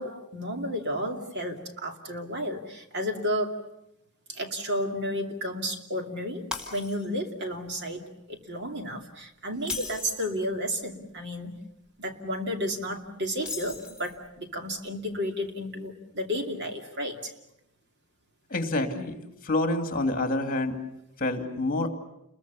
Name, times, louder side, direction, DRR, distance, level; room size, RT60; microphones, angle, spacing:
voice 1, 0.0-3.6 4.3-11.6 12.0-17.3, equal, 50° right, 4 dB, 2.6 m, -32 dB
Shatter, 6.5-7.3 7.7-7.9 9.5-10.4 13.4-14.3, left 3 dB, 5° right, 4.1 m, -37 dB
voice 2, 18.5-19.2 19.4-20.8 21.2-21.9, left 2 dB, 40° left, 6 dB, 2.5 m, -27 dB
30.0 x 22.0 x 7.0 m, 0.86 s
head